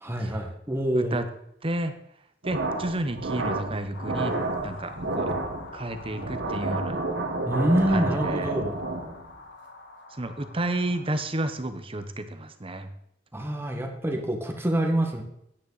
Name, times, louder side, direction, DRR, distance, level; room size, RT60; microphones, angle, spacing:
voice 1, 0.0-1.2 7.5-8.7 13.3-15.2, right 1 dB, 15° right, 2 dB, 1.6 m, -26 dB
voice 2, 0.9-1.2 1.6-1.9 2.4-4.4 4.6-5.3 5.7-7.0 7.9-8.5 10.2-12.9, right 1 dB, 30° right, 9 dB, 0.9 m, -31 dB
sound 1, 2.4-9.3, right 2 dB, 85° right, 1.5 m, -30 dB
sound 2, 3.9-11.0, left 2 dB, 75° left, 1.9 m, -45 dB
9.8 x 9.4 x 4.1 m, 0.75 s
head